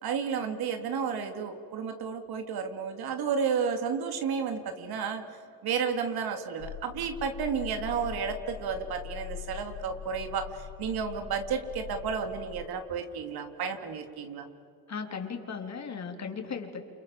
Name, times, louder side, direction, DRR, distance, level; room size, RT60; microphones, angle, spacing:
voice 1, 0.0-5.2 5.6-10.5 10.8-14.5, right 6 dB, 90° right, 6 dB, 3.0 m, -32 dB
sound 1, 6.6-12.7, left 10 dB, 70° left, 1.9 m, -43 dB
voice 2, 14.9-16.8, left 5 dB, 45° left, 4 dB, 3.7 m, -36 dB
29.0 x 28.0 x 7.3 m, 2.5 s
cardioid pair, 110°, 36 cm